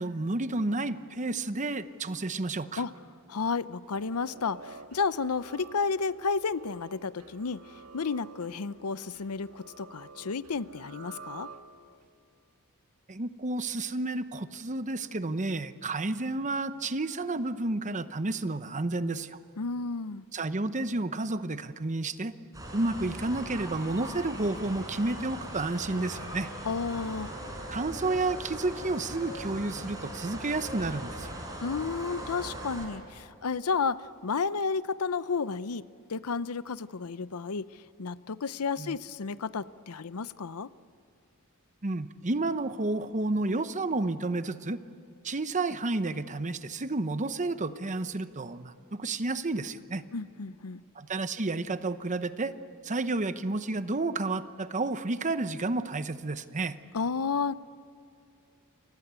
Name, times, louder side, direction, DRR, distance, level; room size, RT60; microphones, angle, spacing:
voice 1, 0.0-2.8 13.1-19.4 20.3-22.3 22.7-26.5 27.7-31.3 38.8-39.0 41.8-44.8 45.2-50.0 50.9-52.5 52.8-56.8, right 2 dB, 35° right, 12 dB, 0.9 m, -31 dB
voice 2, 3.3-11.5 19.6-20.2 26.6-27.3 31.6-35.8 36.1-40.7 50.1-50.8 56.9-57.5, left 5 dB, 85° left, 16 dB, 0.7 m, -32 dB
sound 1, 3.8-12.1, right 4 dB, 80° right, 1.9 m, -50 dB
sound 2, 22.5-32.9, right 1 dB, 15° right, 5.7 m, -40 dB
29.0 x 24.5 x 8.2 m, 2.5 s
head